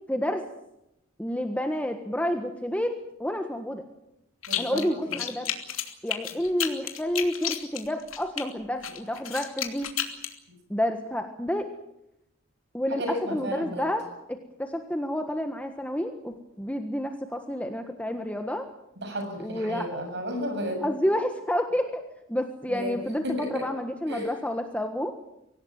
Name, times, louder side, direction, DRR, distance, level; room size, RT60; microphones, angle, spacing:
voice 1, 0.1-0.4 1.2-3.8 4.6-5.5 6.0-9.9 10.7-11.7 12.7-14.0 14.6-18.7 19.4-19.9 20.8-22.0 22.3-25.1, equal, 5° left, 5 dB, 1.5 m, -29 dB
sound 1, 4.4-4.9 5.1-8.4 8.8-10.3, left 11 dB, 90° left, 2.9 m, -31 dB
voice 2, 4.5-5.2 12.9-13.8 19.0-20.9 22.7-23.7 24.1-24.3, equal, 55° right, 5 dB, 7.4 m, -33 dB
25.0 x 17.5 x 9.1 m, 0.85 s
head